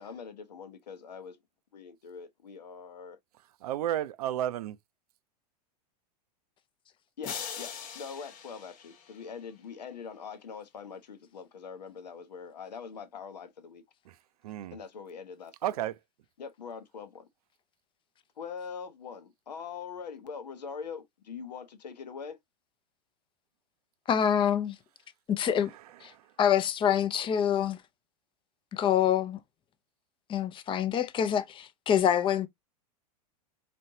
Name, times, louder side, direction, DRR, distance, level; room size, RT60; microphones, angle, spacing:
voice 1, 0.0-1.4 1.7-3.2 7.2-13.8 14.7-15.7 16.4-17.3 18.4-22.4, left 6 dB, 80° left, 0.9 m, -43 dB
voice 2, 3.6-4.8 14.1-14.2 14.4-14.8 15.6-16.0 26.1-26.3, right 12 dB, 65° right, 0.5 m, -32 dB
sound 1, 7.2-9.6, left 7 dB, 40° left, 1.1 m, -41 dB
voice 3, 24.1-24.8 25.3-25.7 26.0-26.1 26.4-27.8 28.7-29.4 30.3-32.5, left 9 dB, 25° left, 0.6 m, -26 dB
4.2 x 3.1 x 2.7 m
hypercardioid pair, 100°, 21 cm